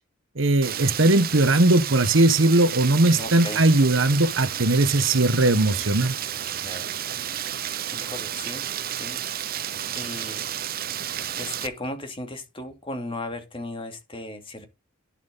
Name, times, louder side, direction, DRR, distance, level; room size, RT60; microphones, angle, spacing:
voice 1, 0.4-6.1, right 2 dB, 65° right, 1.2 m, -19 dB
Rain, 0.6-11.7, right 10 dB, 45° right, 0.7 m, -31 dB
voice 2, 3.2-3.6 6.6-7.0 7.9-9.2 9.9-10.4 11.4-14.7, left 2 dB, 25° left, 2.5 m, -36 dB
11.0 x 7.4 x 4.0 m
head